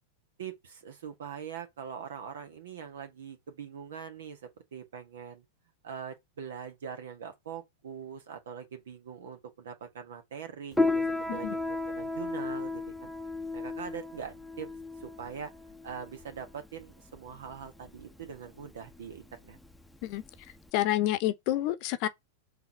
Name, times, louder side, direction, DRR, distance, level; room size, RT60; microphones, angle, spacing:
voice 1, 0.4-5.4 5.8-13.1 13.5-14.7 15.0-15.5 15.8-19.6, right 7 dB, 70° right, 1.7 m, -42 dB
Piano, 10.7-20.7, left 3 dB, ahead, 0.8 m, -34 dB
voice 2, 20.7-22.1, left 14 dB, 50° left, 0.8 m, -28 dB
5.6 x 3.5 x 5.5 m
hypercardioid pair, 100°, 0 cm